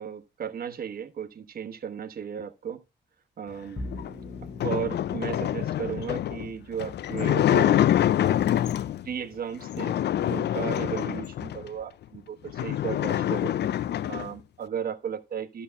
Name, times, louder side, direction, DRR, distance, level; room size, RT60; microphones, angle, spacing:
voice 1, 0.0-2.8 3.4-3.8 4.6-7.9 9.0-10.0 10.3-13.6 14.1-15.6, right 8 dB, 55° right, 1.1 m, -35 dB
Bowed string instrument, 3.8-10.2, left 1 dB, 20° left, 1.3 m, -45 dB
sound 1, 3.9-9.1 9.6-11.7 12.1-12.2 12.5-14.3, left 11 dB, 70° left, 0.4 m, -26 dB
12.5 x 4.4 x 5.7 m
wide cardioid pair, 150°, 18 cm